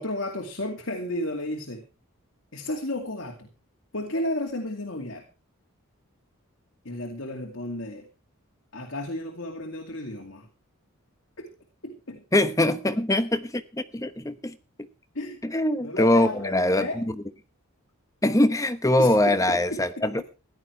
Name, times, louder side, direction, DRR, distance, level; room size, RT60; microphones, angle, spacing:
voice 1, 0.0-1.8 2.5-3.5 3.9-5.3 6.8-8.1 8.7-10.5 11.4-11.5 11.8-12.4 15.1-15.4 15.8-17.0 19.0-20.2, left 1 dB, 60° left, 2.4 m, -33 dB
voice 2, 12.3-14.5 15.4-17.1 18.2-20.2, left 1 dB, 15° left, 1.0 m, -23 dB
16.0 x 11.5 x 4.6 m
head